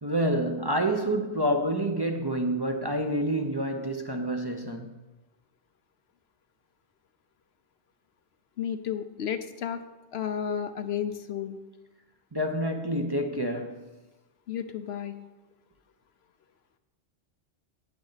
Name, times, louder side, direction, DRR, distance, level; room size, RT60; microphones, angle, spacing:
voice 1, 0.0-4.9 12.3-13.9, right 1 dB, 25° right, 0.7 m, -28 dB
voice 2, 8.6-9.8 10.1-11.6 14.5-15.2, left 8 dB, 65° left, 0.9 m, -32 dB
17.5 x 6.5 x 4.0 m
omnidirectional pair, 1.2 m